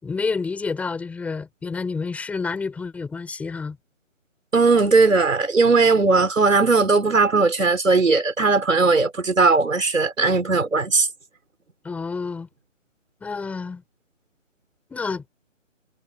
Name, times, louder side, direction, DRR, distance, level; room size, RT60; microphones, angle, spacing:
voice 1, 0.0-3.8 11.8-12.5 13.2-13.8 14.9-15.3, left 4 dB, 5° left, 5.8 m, -29 dB
voice 2, 4.5-11.1, right 3 dB, 80° right, 5.5 m, -18 dB
hypercardioid pair, 165°, 39 cm